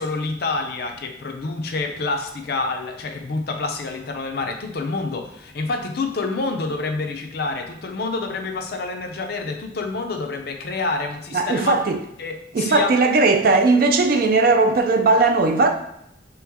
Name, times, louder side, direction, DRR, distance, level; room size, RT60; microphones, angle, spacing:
voice 1, 0.0-11.8 12.2-13.0, left 3 dB, 60° left, 0.5 m, -27 dB
voice 2, 11.3-12.0 12.5-15.7, right 3 dB, 55° right, 0.4 m, -17 dB
3.4 x 3.1 x 3.5 m
head